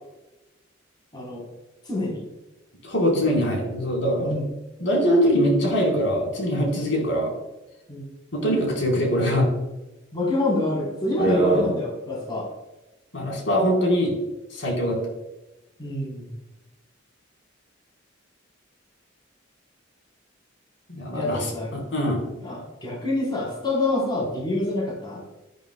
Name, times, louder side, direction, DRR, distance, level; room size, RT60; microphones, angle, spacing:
voice 1, 1.1-1.4 1.8-2.2 4.2-4.5 7.9-8.1 10.1-12.5 15.8-16.3 21.1-21.7 22.4-25.2, left 2 dB, 20° left, -3 dB, 3.9 m, -27 dB
voice 2, 2.8-4.3 4.8-7.3 8.3-9.5 11.2-11.7 13.1-14.2 14.5-15.0 20.9-22.2, equal, 65° left, 0 dB, 4.3 m, -22 dB
13.0 x 12.0 x 2.3 m, 0.99 s
head